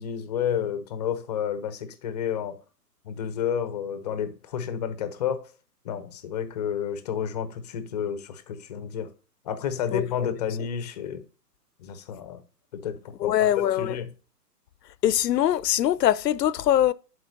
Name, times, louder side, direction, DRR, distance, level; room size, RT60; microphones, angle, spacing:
voice 1, 0.0-2.6 3.0-5.5 5.8-9.1 9.4-11.2 11.8-12.4 12.7-13.5 13.8-14.1, left 8 dB, 25° left, 0.6 m, -30 dB
voice 2, 13.2-14.0 15.0-16.9, left 12 dB, 80° left, 0.6 m, -22 dB
11.0 x 4.3 x 2.6 m
hypercardioid pair, 140°, 49 cm